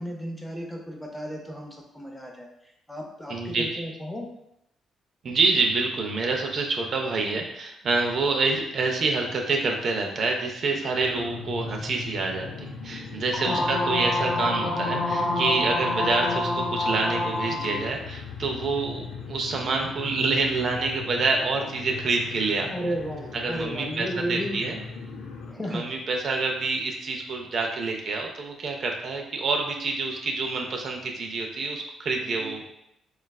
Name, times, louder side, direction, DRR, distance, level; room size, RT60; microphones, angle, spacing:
voice 1, 0.0-4.3 11.1-11.2 13.4-13.7 17.5-17.9 22.7-24.6 25.5-25.9 32.4-32.6, equal, 10° left, 1 dB, 0.5 m, -34 dB
voice 2, 3.3-3.8 5.2-22.7 23.3-24.8 25.7-32.6, right 3 dB, 55° right, 1 dB, 0.4 m, -27 dB
sound 1, 10.8-25.5, left 4 dB, 85° left, 0.3 m, -39 dB
sound 2, 13.3-17.8, left 2 dB, 35° left, 0.7 m, -27 dB
3.1 x 2.3 x 2.2 m, 0.79 s
cardioid pair, 90°, 0 cm